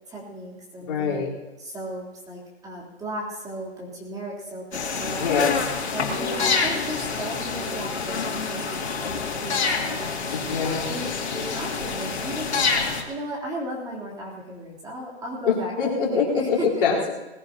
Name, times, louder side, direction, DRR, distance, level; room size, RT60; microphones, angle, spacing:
voice 1, 0.1-1.2 1.6-5.3 5.9-10.3 10.6-11.1 11.3-16.7, right 1 dB, 10° right, -4 dB, 3.4 m, -35 dB
voice 2, 0.9-1.3 5.2-5.5 10.3-10.9 15.8-17.1, left 5 dB, 50° left, -4 dB, 4.1 m, -24 dB
sound 1, 4.7-13.0, left 5 dB, 75° left, 2.8 m, -27 dB
19.5 x 17.0 x 2.9 m, 1.1 s
hypercardioid pair, 135°, 33 cm